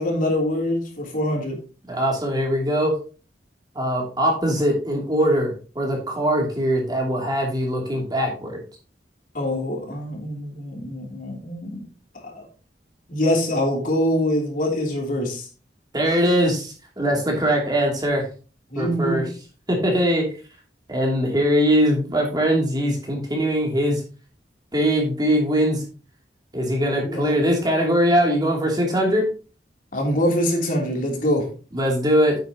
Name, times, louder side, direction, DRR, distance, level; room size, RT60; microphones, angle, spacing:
voice 1, 0.0-1.6 9.3-11.8 12.2-12.4 13.1-15.5 18.7-19.3 27.0-27.3 29.9-31.5, left 1 dB, 50° left, 3.2 m, -24 dB
voice 2, 1.9-2.9 3.7-8.6 15.9-18.2 18.8-19.2 19.7-20.2 20.9-24.0 24.7-25.8 26.5-29.2 31.7-32.4, equal, 25° right, 2.8 m, -21 dB
9.2 x 8.7 x 2.9 m
head